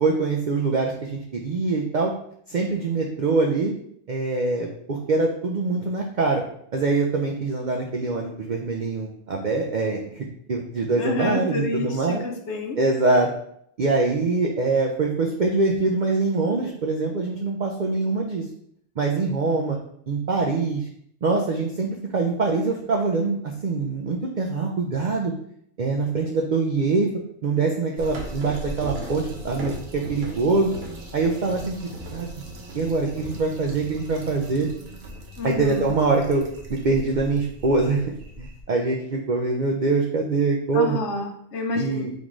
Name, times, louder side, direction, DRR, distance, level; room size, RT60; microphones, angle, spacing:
voice 1, 0.0-2.1 2.5-3.7 4.1-6.4 6.7-12.2 12.8-13.3 13.8-18.5 19.0-19.8 20.1-20.9 21.2-25.3 25.8-27.1 27.4-30.7 31.1-31.8 32.1-32.3 32.7-34.7 35.4-36.4 36.7-38.0 38.4-41.0 41.7-42.1, right 3 dB, 85° right, 0 dB, 0.4 m, -24 dB
voice 2, 11.0-12.8 35.4-35.9 40.7-42.0, left 2 dB, 60° left, 3 dB, 0.8 m, -29 dB
sound 1, 28.0-38.6, right 1 dB, 55° right, 0.9 m, -38 dB
3.7 x 3.7 x 3.0 m, 0.68 s
omnidirectional pair, 1.5 m